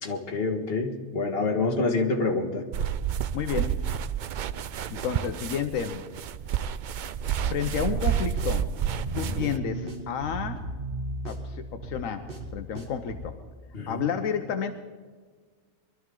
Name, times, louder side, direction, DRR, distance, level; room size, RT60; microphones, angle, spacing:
voice 1, 0.0-2.7 13.7-14.0, left 3 dB, 50° left, 1 dB, 1.9 m, -27 dB
sound 1, 2.7-9.6, right 9 dB, 75° right, 0.4 m, -30 dB
voice 2, 3.3-3.8 4.9-6.0 7.5-8.7 9.1-10.7 11.2-13.4 13.9-14.7, left 7 dB, 80° left, 7 dB, 1.2 m, -31 dB
sound 2, 7.7-13.3, right 2 dB, 40° right, 2.3 m, -36 dB
23.0 x 12.5 x 3.7 m, 1.5 s
omnidirectional pair, 1.4 m